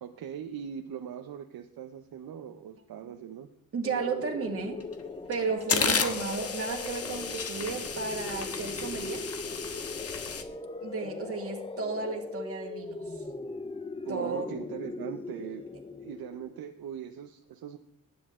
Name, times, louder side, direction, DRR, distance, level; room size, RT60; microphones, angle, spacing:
voice 1, 0.0-3.5 14.0-15.7 16.0-17.8, right 8 dB, 90° right, 5 dB, 0.9 m, -40 dB
voice 2, 3.7-4.8 5.3-9.3 10.8-13.0 14.1-14.5, right 4 dB, 40° right, 1 dB, 2.2 m, -33 dB
sound 1, 3.8-16.6, left 3 dB, 15° left, 0.6 m, -39 dB
sound 2, 4.8-4.9 5.3-10.4, left 5 dB, 40° left, 1.3 m, -32 dB
20.0 x 9.9 x 3.7 m, 0.68 s
wide cardioid pair, 145°, 35 cm